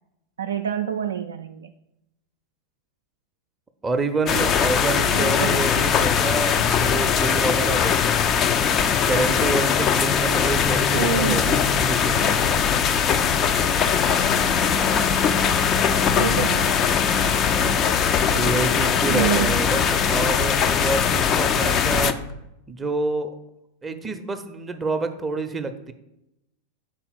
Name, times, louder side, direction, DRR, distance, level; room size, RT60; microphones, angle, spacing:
voice 1, 0.4-1.7 4.9-5.7 10.9-11.5 16.2-16.8 19.1-19.6, right 9 dB, 65° right, 4 dB, 0.3 m, -27 dB
voice 2, 3.8-8.2 9.0-12.4 17.5-17.8 18.3-22.1 22.7-23.3 23.8-25.9, right 3 dB, 15° right, 7 dB, 0.6 m, -28 dB
sound 1, 4.3-22.1, left 7 dB, 30° left, 0.4 m, -21 dB
sound 2, 11.1-22.4, left 1 dB, 60° left, 0.7 m, -38 dB
5.4 x 4.1 x 5.9 m, 0.87 s
figure-of-eight pair, 90°, 0 cm